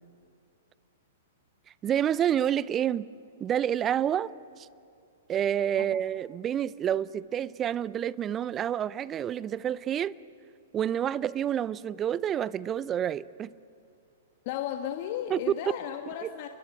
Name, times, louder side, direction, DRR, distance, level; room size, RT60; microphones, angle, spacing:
voice 1, 1.8-3.1 3.4-4.3 4.6-4.7 5.3-10.2 10.7-13.5 15.3-15.4 16.2-16.3, right 10 dB, 25° right, 0.6 m, -28 dB
voice 2, 14.4-16.5, left 10 dB, 45° left, 1.5 m, -34 dB
29.0 x 22.0 x 9.1 m
figure-of-eight pair, 110°, 0 cm